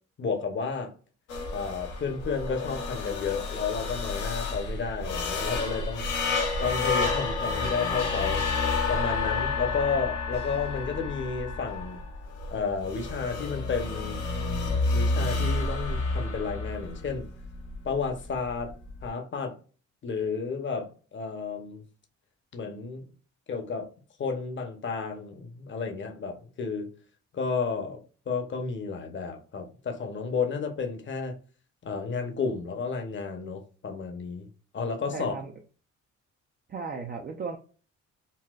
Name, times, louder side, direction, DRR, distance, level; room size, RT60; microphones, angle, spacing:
voice 1, 0.2-0.9 1.5-6.1 6.6-8.4 8.9-12.0 12.5-14.2 14.9-17.3 17.8-18.7 19.0-19.6 20.0-21.8 22.5-23.0 23.5-23.9 24.2-26.9 27.3-31.4 31.8-34.5 34.7-35.3, left 5 dB, 40° left, 0.8 m, -32 dB
sound 1, 1.3-19.1, left 3 dB, 75° left, 0.9 m, -30 dB
voice 2, 35.1-35.5 36.7-37.6, right 4 dB, 30° right, 0.5 m, -35 dB
4.0 x 2.2 x 2.3 m
cardioid pair, 90°, 30 cm